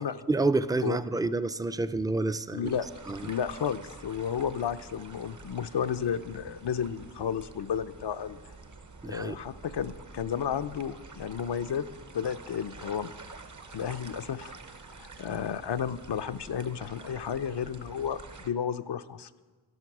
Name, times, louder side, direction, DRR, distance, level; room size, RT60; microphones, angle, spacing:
voice 1, 0.3-2.7 3.1-3.3 9.0-9.4, right 3 dB, 10° right, 12 dB, 0.4 m, -28 dB
voice 2, 2.5-2.9 3.2-8.4 9.0-11.8 12.1-13.1 13.7-14.5 15.0-19.3, left 8 dB, 75° left, 11 dB, 0.6 m, -32 dB
sound 1, 2.6-18.5, right 3 dB, 45° right, 0.8 m, -48 dB
12.5 x 12.0 x 6.0 m, 1.4 s
wide cardioid pair, 70°, 42 cm